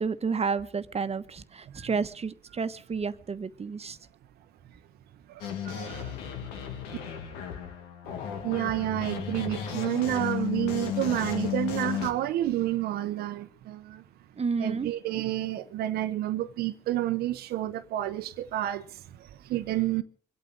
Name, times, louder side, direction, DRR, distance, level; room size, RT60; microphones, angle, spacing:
voice 1, 0.0-4.0 14.4-14.9, right 5 dB, 40° right, 1.2 m, -31 dB
voice 2, 5.3-6.7 8.4-14.0 14.6-20.0, right 14 dB, 75° right, 0.8 m, -30 dB
sound 1, 5.4-12.1, left 9 dB, 85° left, 1.7 m, -34 dB
23.5 x 8.6 x 6.5 m
hypercardioid pair, 50°, 16 cm